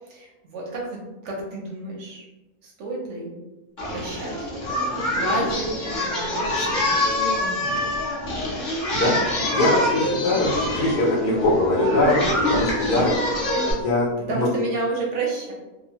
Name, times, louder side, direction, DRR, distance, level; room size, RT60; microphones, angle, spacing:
voice 1, 0.1-2.2 2.6-3.3 3.9-4.5 5.1-7.0 7.6-7.9 10.4-10.6 12.8-13.2 14.3-15.5, right 2 dB, 65° right, -2 dB, 0.7 m, -31 dB
Singing, 3.8-13.7, left 1 dB, 40° left, 0.7 m, -25 dB
voice 2, 9.5-13.1 13.7-14.5, left 2 dB, 80° left, -7 dB, 1.2 m, -22 dB
2.9 x 2.0 x 2.8 m, 1.1 s
omnidirectional pair, 1.7 m